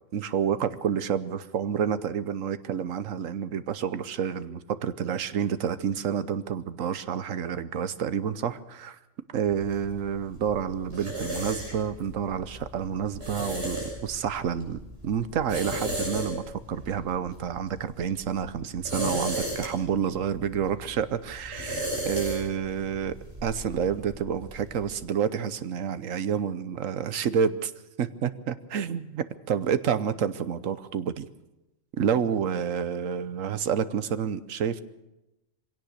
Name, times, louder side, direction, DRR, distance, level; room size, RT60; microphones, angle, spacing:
voice 1, 0.1-9.0 9.3-23.1 23.4-27.7 28.0-31.3 32.0-34.8, right 8 dB, 90° right, 13 dB, 1.3 m, -29 dB
sound 1, 9.5-24.9, right 1 dB, 55° right, 7.1 m, -36 dB
23.0 x 17.0 x 6.6 m, 0.98 s
omnidirectional pair, 1.3 m